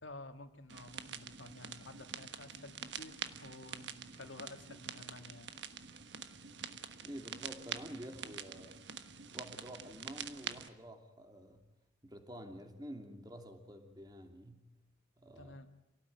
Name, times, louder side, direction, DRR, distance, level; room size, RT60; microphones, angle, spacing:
voice 1, 0.0-5.5 15.4-15.7, left 2 dB, 75° left, 6 dB, 2.4 m, -52 dB
sound 1, 0.7-10.7, right 7 dB, 60° right, 1.3 m, -46 dB
voice 2, 7.0-8.8 9.3-11.6 12.0-14.6 15.2-15.5, equal, 20° right, 5 dB, 2.8 m, -49 dB
27.5 x 18.0 x 9.4 m, 0.89 s
head